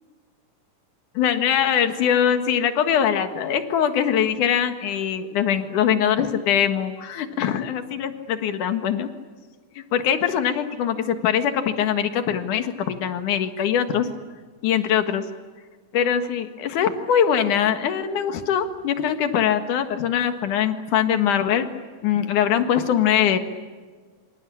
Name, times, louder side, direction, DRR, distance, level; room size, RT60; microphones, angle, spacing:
voice 1, 1.1-9.1 9.8-14.1 14.6-15.2 15.9-21.7 22.0-23.4, left 9 dB, 70° left, 8 dB, 3.1 m, -22 dB
27.0 x 25.5 x 8.6 m, 1.4 s
omnidirectional pair, 3.8 m